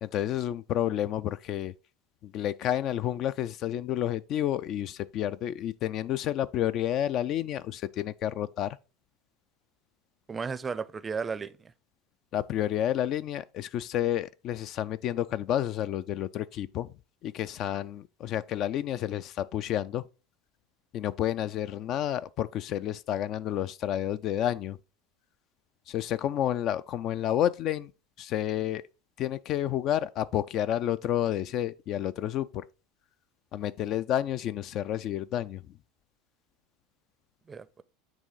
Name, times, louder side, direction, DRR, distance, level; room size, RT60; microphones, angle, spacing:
voice 1, 0.0-1.7 2.2-8.8 12.3-16.9 17.2-20.0 20.9-24.8 25.9-27.9 28.2-28.8 29.2-32.6 33.5-35.6, left 11 dB, 50° left, 0.3 m, -30 dB
voice 2, 10.3-11.7 37.5-37.8, right 5 dB, 25° right, 0.5 m, -34 dB
8.9 x 3.1 x 3.9 m
hypercardioid pair, 80°, 0 cm